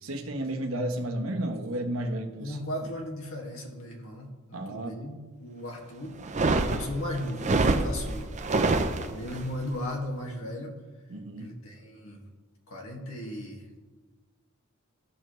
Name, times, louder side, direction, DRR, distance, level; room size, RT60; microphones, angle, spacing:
voice 1, 0.0-2.6 4.5-4.9 11.1-11.5, right 1 dB, 75° right, 5 dB, 1.1 m, -32 dB
voice 2, 2.4-6.2 6.7-8.3 9.0-10.8 11.4-12.2 12.7-13.7, left 1 dB, 75° left, 0 dB, 1.9 m, -36 dB
sound 1, 6.2-9.4, right 3 dB, 35° right, 0.6 m, -26 dB
15.0 x 6.8 x 3.1 m, 1.3 s
head